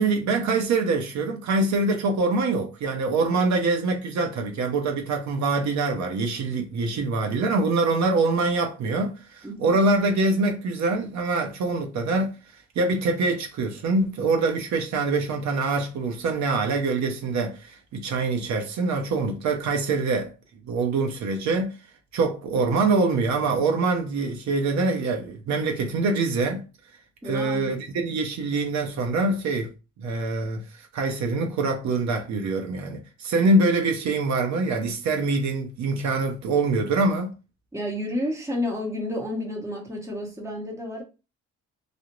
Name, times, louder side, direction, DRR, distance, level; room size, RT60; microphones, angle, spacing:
voice 1, 0.0-12.4 12.8-20.3 20.7-21.7 22.1-26.6 27.2-29.7 30.0-37.3, right 3 dB, 65° right, 0.6 m, -24 dB
voice 2, 9.4-9.7 27.2-27.8 37.7-41.0, left 1 dB, 10° right, 0.9 m, -30 dB
2.4 x 2.0 x 2.9 m
cardioid pair, 90°, 30 cm